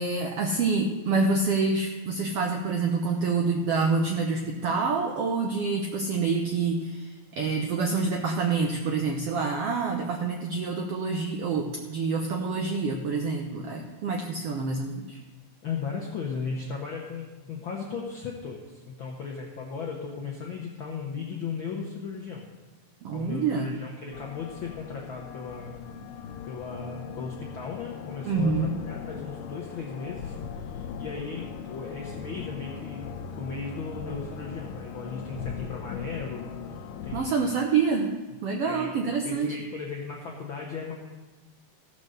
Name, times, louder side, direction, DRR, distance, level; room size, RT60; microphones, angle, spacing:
voice 1, 0.0-15.2 23.0-23.8 28.2-28.8 37.1-38.1 38.4-39.6, right 4 dB, 80° right, 3 dB, 1.3 m, -27 dB
voice 2, 15.6-22.5 23.1-25.8 26.5-37.4 38.6-38.9 39.2-40.9, left 5 dB, 70° left, -1 dB, 1.1 m, -36 dB
sound 1, 24.1-37.2, left 6 dB, 90° left, 2.2 m, -39 dB
15.0 x 5.4 x 6.4 m, 1.2 s
omnidirectional pair, 3.7 m